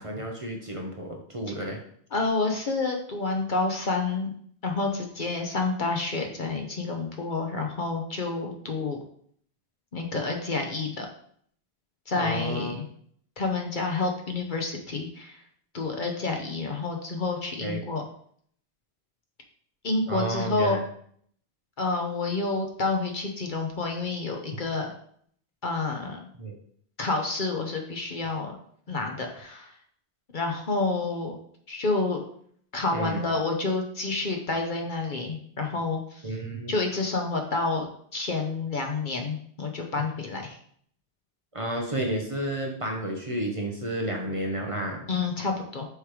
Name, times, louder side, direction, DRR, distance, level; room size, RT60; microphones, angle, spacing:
voice 1, 0.0-1.8 12.2-12.9 17.6-17.8 20.1-20.8 26.4-26.6 32.9-33.3 36.2-36.7 41.5-45.1, right 1 dB, 35° right, 1 dB, 0.9 m, -31 dB
voice 2, 2.1-4.3 4.6-9.0 9.9-11.1 12.1-12.8 13.4-15.4 15.7-18.0 19.8-20.8 21.8-24.9 25.6-26.2 27.0-28.6 28.9-29.7 30.3-31.4 31.7-32.2 32.7-36.2 36.7-37.9 38.1-40.6 45.1-45.8, left 3 dB, 50° left, 2 dB, 1.0 m, -29 dB
6.5 x 3.2 x 4.9 m, 0.62 s
omnidirectional pair, 1.1 m